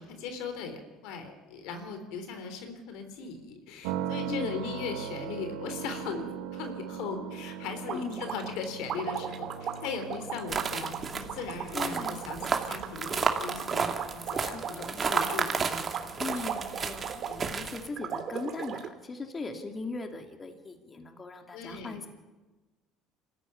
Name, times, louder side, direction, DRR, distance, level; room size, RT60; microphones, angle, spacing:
voice 1, 0.0-15.9 16.2-16.4 17.3-17.4 21.5-22.1, left 5 dB, 70° left, 7 dB, 3.5 m, -39 dB
sound 1, 3.8-17.7, right 8 dB, 75° right, 1.4 m, -41 dB
voice 2, 4.3-4.7 7.9-8.2 11.7-12.2 14.4-15.0 16.2-22.1, left 3 dB, 30° left, 5 dB, 2.6 m, -39 dB
sound 2, 7.7-17.6 18.0-18.9, right 8 dB, 55° right, 2.5 m, -37 dB
sound 3, 10.5-17.9, right 5 dB, 35° right, 2.7 m, -32 dB
26.0 x 14.5 x 9.5 m, 1.2 s
hypercardioid pair, 65°, 0 cm